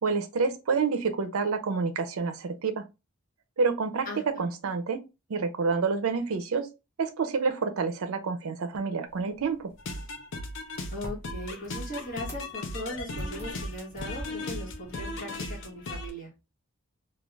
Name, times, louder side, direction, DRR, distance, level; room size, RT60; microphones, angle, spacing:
voice 1, 0.0-2.9 3.6-5.0 5.3-6.7 7.0-9.7, right 5 dB, 70° right, 0.5 m, -28 dB
voice 2, 4.0-4.5 10.9-16.3, left 1 dB, 40° left, 1.1 m, -39 dB
sound 1, 9.1-16.1, equal, 10° left, 0.6 m, -45 dB
sound 2, 9.8-16.1, left 2 dB, 55° left, 0.5 m, -37 dB
2.4 x 2.2 x 3.1 m
head